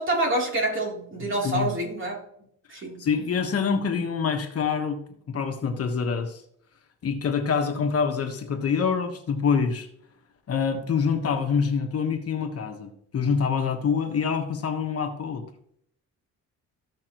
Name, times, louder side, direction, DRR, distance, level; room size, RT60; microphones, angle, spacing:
voice 1, 0.0-2.2 2.7-3.0, right 1 dB, 40° right, -1 dB, 3.3 m, -27 dB
voice 2, 3.0-5.0 5.3-6.4 7.0-9.9 10.5-15.4, left 6 dB, 50° left, 5 dB, 1.4 m, -26 dB
15.0 x 5.7 x 3.1 m, 0.71 s
cardioid pair, 90°, 30 cm